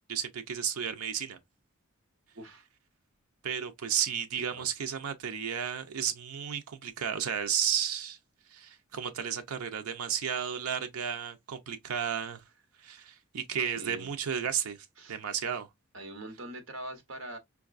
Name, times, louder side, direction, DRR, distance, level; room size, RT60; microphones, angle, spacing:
voice 1, 0.1-1.4 3.4-8.2 8.5-12.4 12.8-14.8 15.1-15.7, right 8 dB, 85° right, 0.5 m, -33 dB
voice 2, 2.3-2.7 4.3-4.7 13.6-14.1 15.0-15.2 15.9-17.4, right 1 dB, 65° right, 1.0 m, -43 dB
4.5 x 2.3 x 2.4 m
head